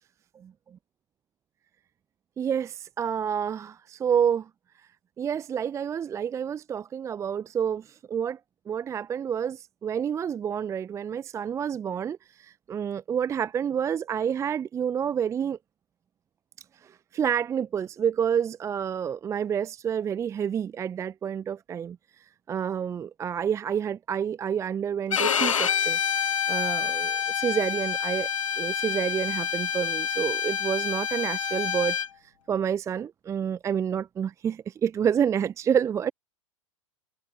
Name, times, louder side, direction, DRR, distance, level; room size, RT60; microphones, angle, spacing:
voice 1, 2.4-4.5 5.2-8.4 8.7-15.6 16.8-22.0 22.5-28.3 28.6-32.0 32.2-36.1, right 8 dB, 15° right, 0.6 m, -29 dB
Bowed string instrument, 25.1-32.1, left 8 dB, 70° left, 0.6 m, -27 dB
figure-of-eight pair, 95°, 17 cm